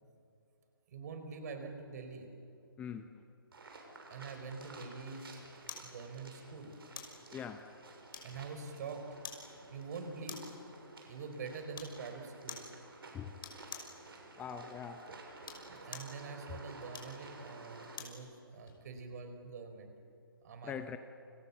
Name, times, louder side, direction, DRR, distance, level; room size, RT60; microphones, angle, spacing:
voice 1, 0.9-2.3 4.1-5.3 5.8-6.7 8.2-9.1 9.7-10.4 11.1-12.7 15.7-19.9 20.4-21.0, right 4 dB, 45° right, 6 dB, 4.8 m, -45 dB
voice 2, 2.8-3.1 7.3-7.7 13.1-13.3 14.4-15.1 20.6-21.0, left 7 dB, 10° left, 8 dB, 0.8 m, -42 dB
sound 1, 3.5-18.0, right 3 dB, 75° right, 6.9 m, -53 dB
sound 2, 5.7-5.9 6.9-7.2 8.1-8.6 9.2-9.5 10.3-10.6 11.7-12.0 12.5-12.7 13.4-14.0 15.3-16.2 16.9-18.2 18.7-18.8, left 5 dB, 65° left, 6.0 m, -47 dB
30.0 x 26.0 x 7.2 m, 2.6 s
hypercardioid pair, 150°, 12 cm